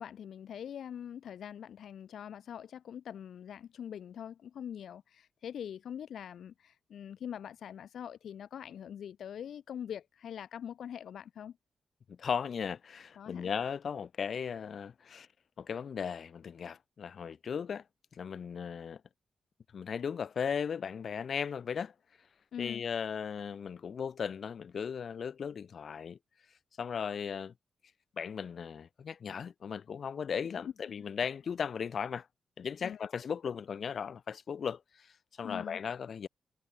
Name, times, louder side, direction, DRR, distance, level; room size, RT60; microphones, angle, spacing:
voice 1, 0.0-11.6 13.2-13.5 22.5-22.9 32.8-33.0 35.4-35.8, left 9 dB, 80° left, 3.9 m, -43 dB
voice 2, 12.1-15.3 15.6-17.8 18.1-19.0 19.7-21.9 22.6-26.2 26.8-27.5 28.2-32.3 32.6-36.3, left 7 dB, 60° left, 6.6 m, -37 dB
cardioid pair, 100°, 0 cm